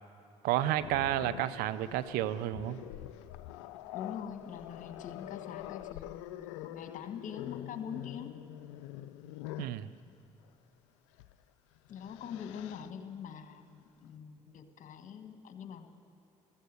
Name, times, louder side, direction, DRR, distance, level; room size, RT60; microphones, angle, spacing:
voice 1, 0.4-2.8 9.6-9.9, right 13 dB, 75° right, 15 dB, 0.6 m, -31 dB
Growling, 0.8-9.8 11.1-11.3 11.8-12.9, left 14 dB, 90° left, 0.4 m, -45 dB
voice 2, 3.9-8.4 11.9-15.9, left 8 dB, 60° left, 7 dB, 1.4 m, -44 dB
14.5 x 14.5 x 6.5 m, 2.7 s
hypercardioid pair, 60°, 15 cm